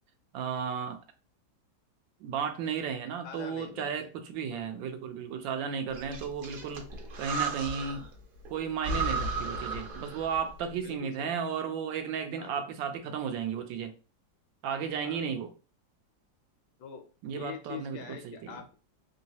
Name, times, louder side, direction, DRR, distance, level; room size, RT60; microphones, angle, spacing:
voice 1, 0.3-1.0 2.2-6.9 7.2-8.1 8.5-13.9 14.6-15.5 17.2-18.6, right 7 dB, 85° right, 1.4 m, -34 dB
voice 2, 3.2-4.1 4.5-4.8 10.8-11.3 12.4-12.7 15.0-15.2 16.8-18.7, left 7 dB, 75° left, 1.2 m, -45 dB
Breathing, 5.9-8.1 8.4-8.5 8.8-10.5, right 3 dB, 60° right, 1.0 m, -34 dB
3.6 x 2.7 x 2.8 m
omnidirectional pair, 2.0 m